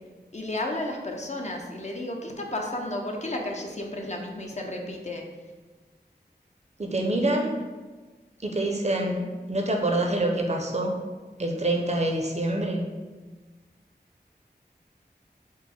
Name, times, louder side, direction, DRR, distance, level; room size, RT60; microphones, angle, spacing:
voice 1, 0.3-5.3, left 1 dB, 40° left, 1 dB, 0.5 m, -32 dB
voice 2, 6.8-7.5 8.4-9.2 9.5-11.0 11.4-12.8, right 1 dB, 40° right, 2 dB, 0.5 m, -26 dB
4.5 x 2.0 x 4.1 m, 1.3 s
wide cardioid pair, 50°, 18 cm